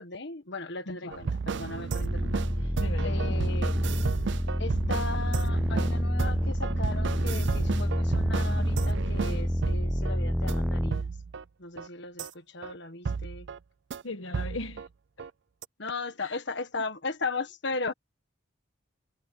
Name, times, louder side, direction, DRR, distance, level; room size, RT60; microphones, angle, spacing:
voice 1, 0.0-2.7 3.0-3.7 4.6-11.1 11.6-13.5 15.8-17.9, left 3 dB, 60° left, 1.6 m, -37 dB
sound 1, 1.1-10.2 10.5-10.6 10.9-11.4 11.8-11.9 12.2-12.3 12.6-12.7 13.1-13.6 13.9-14.0 14.3-14.9 15.2-15.3 15.6-15.7, right 5 dB, 65° right, 0.5 m, -33 dB
sound 2, 2.0-10.9, equal, ahead, 0.3 m, -28 dB
voice 2, 2.8-3.4 14.0-14.9 15.2-15.3 16.2-16.4, left 2 dB, 85° left, 1.4 m, -38 dB
head